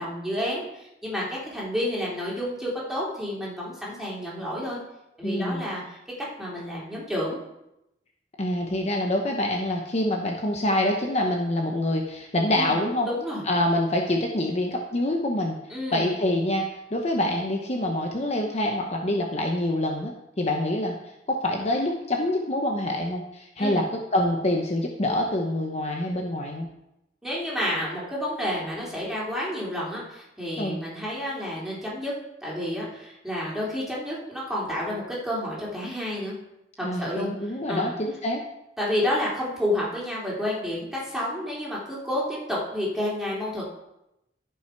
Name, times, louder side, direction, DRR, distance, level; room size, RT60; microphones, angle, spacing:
voice 1, 0.0-4.8 5.2-6.0 6.4-7.4 12.5-12.8 13.0-13.4 15.7-16.1 23.6-23.8 27.2-32.1 32.4-36.3 37.0-37.3 37.7-37.9 38.8-43.6, left 1 dB, ahead, -6 dB, 3.4 m, -30 dB
voice 2, 5.2-5.6 8.4-13.1 13.5-15.6 15.9-21.0 21.3-23.8 24.1-26.7 30.6-30.8 36.8-38.4, left 1 dB, 40° left, 1 dB, 0.9 m, -26 dB
14.5 x 5.9 x 4.6 m, 0.87 s
head